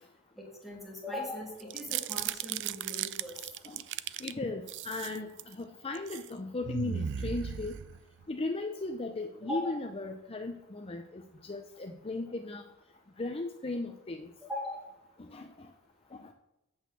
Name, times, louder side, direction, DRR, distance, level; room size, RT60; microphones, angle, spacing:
voice 1, 0.4-3.4 9.5-9.8 14.5-14.9, left 1 dB, ahead, -3 dB, 2.9 m, -39 dB
sound 1, 1.6-4.3 4.7-5.5 5.9-6.3 6.6-8.2, right 9 dB, 55° right, 0.4 m, -36 dB
voice 2, 4.2-7.8 8.3-12.6 13.2-14.3 15.2-15.7 16.2-16.3, left 2 dB, 25° left, 4 dB, 0.6 m, -37 dB
8.7 x 6.4 x 6.9 m, 0.88 s
head